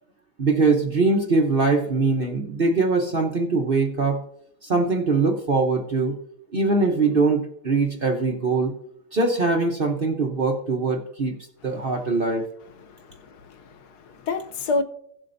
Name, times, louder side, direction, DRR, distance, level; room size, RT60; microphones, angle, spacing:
voice 1, 0.4-4.2 4.6-6.2 6.5-8.7 9.1-11.4 11.6-12.4, right 3 dB, 40° right, 0.9 m, -22 dB
voice 2, 12.8-14.8, left 3 dB, 70° left, 1.2 m, -30 dB
16.5 x 7.5 x 2.6 m
omnidirectional pair, 1.8 m